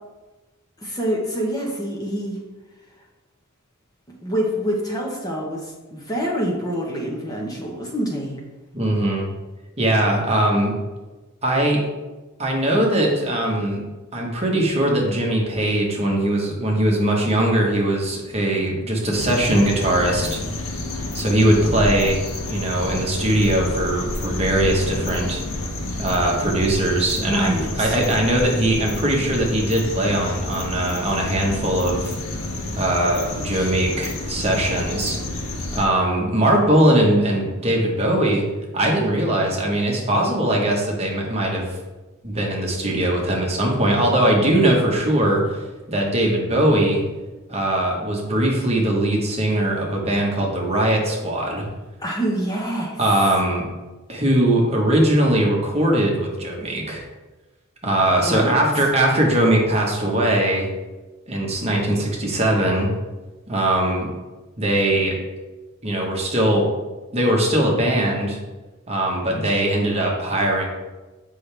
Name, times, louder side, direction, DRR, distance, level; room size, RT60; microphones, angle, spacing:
voice 1, 0.8-2.4 4.2-5.7 5.9-8.4 27.3-28.0 33.3-33.7 52.0-53.0 58.3-58.5, equal, 15° left, -2 dB, 1.2 m, -26 dB
voice 2, 8.7-9.3 9.8-10.7 11.4-11.8 12.4-13.8 14.1-20.4 21.1-22.2 22.5-25.4 26.0-32.1 32.8-35.2 35.7-38.4 38.7-41.7 42.2-45.6 45.9-47.0 47.5-51.6 53.0-53.6 54.1-57.0 57.8-60.7 61.3-62.9 63.5-64.1 64.6-65.2 65.8-66.7 67.1-68.4 68.9-70.7, right 1 dB, 30° right, -1 dB, 1.2 m, -20 dB
sound 1, 19.1-35.8, left 1 dB, 65° left, 1.0 m, -29 dB
7.9 x 5.6 x 3.4 m, 1.2 s
head